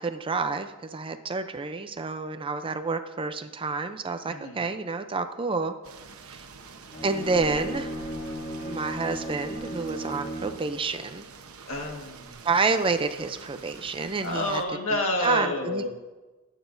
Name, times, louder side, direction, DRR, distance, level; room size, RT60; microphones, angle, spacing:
voice 1, 0.0-5.7 6.2-6.4 7.0-7.9 8.6-11.2 12.4-14.6 15.2-15.9, right 4 dB, 25° right, 9 dB, 0.5 m, -29 dB
voice 2, 4.3-4.6 11.7-12.3 14.2-15.9, left 1 dB, 65° left, 1 dB, 1.6 m, -29 dB
sound 1, 5.8-14.6, right 4 dB, 70° right, 1.0 m, -47 dB
Bowed string instrument, 6.8-10.7, right 1 dB, 45° left, 2.4 m, -36 dB
20.5 x 9.0 x 2.6 m, 1.2 s
head